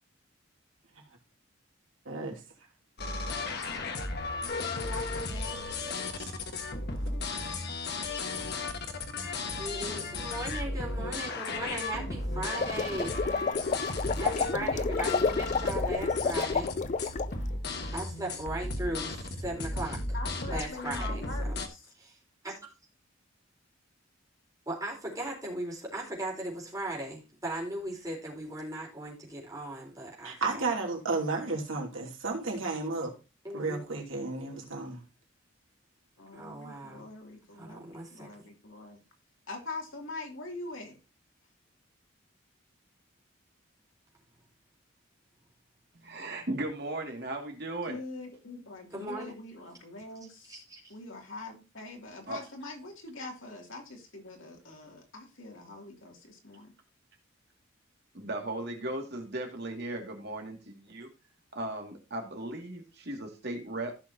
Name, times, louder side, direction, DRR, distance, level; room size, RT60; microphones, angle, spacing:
voice 1, 2.0-2.4 6.2-6.3 30.2-33.1 33.5-35.0, right 3 dB, 80° right, 2.8 m, -33 dB
sound 1, 3.0-21.7, left 2 dB, 55° left, 1.4 m, -35 dB
voice 2, 4.8-6.0 20.1-21.9 36.2-39.0 39.5-41.0 47.9-50.6 50.9-56.7, left 3 dB, 75° left, 2.7 m, -43 dB
voice 3, 9.6-13.2 14.2-16.7 17.9-20.0 20.5-21.6 22.0-22.2 22.4-22.5 24.7-30.6 33.4-33.8 36.3-37.1 37.5-38.5 48.9-49.4 50.5-50.9, right 1 dB, 15° right, 4.0 m, -38 dB
sound 2, 12.4-17.3, left 4 dB, 35° left, 0.4 m, -30 dB
voice 4, 46.0-48.0 52.3-52.4 58.1-61.1 61.5-64.0, right 1 dB, 55° right, 2.3 m, -37 dB
15.0 x 6.1 x 2.8 m
head